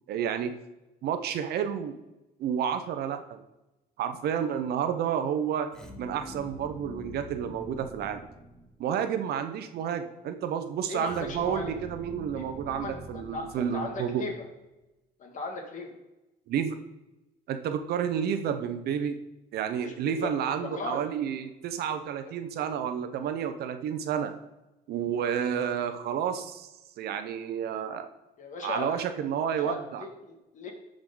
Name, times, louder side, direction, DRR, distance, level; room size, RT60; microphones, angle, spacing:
voice 1, 0.1-0.5 1.0-2.0 2.4-3.4 4.0-5.7 6.0-8.2 8.8-14.2 16.5-16.8 17.5-19.2 19.5-24.3 24.9-26.7 27.0-28.1 28.6-30.0, right 8 dB, 70° right, 8 dB, 0.9 m, -30 dB
sound 1, 5.7-9.0 11.0-14.3, equal, 5° left, 1.2 m, -45 dB
voice 2, 10.9-11.7 12.3-14.4 15.2-15.9 19.8-21.1 22.2-22.3 28.4-29.1 29.6-30.7, left 3 dB, 50° left, 2 dB, 2.1 m, -38 dB
13.5 x 5.1 x 3.9 m, 0.99 s
cardioid pair, 110°, 17 cm